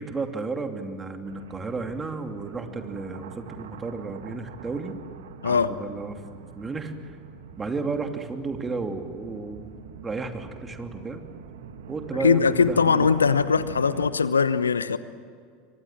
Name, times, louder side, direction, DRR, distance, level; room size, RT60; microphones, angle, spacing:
voice 1, 0.0-5.0 5.4-6.2 6.5-7.1 7.6-9.7 10.0-11.2 11.9-13.1, right 4 dB, 20° right, 6 dB, 2.8 m, -33 dB
sound 1, 1.3-14.1, right 6 dB, 65° right, 2.0 m, -43 dB
voice 2, 5.4-5.7 12.2-15.0, left 5 dB, 75° left, 15 dB, 0.9 m, -21 dB
29.0 x 24.0 x 7.6 m, 2.2 s
figure-of-eight pair, 80°, 0 cm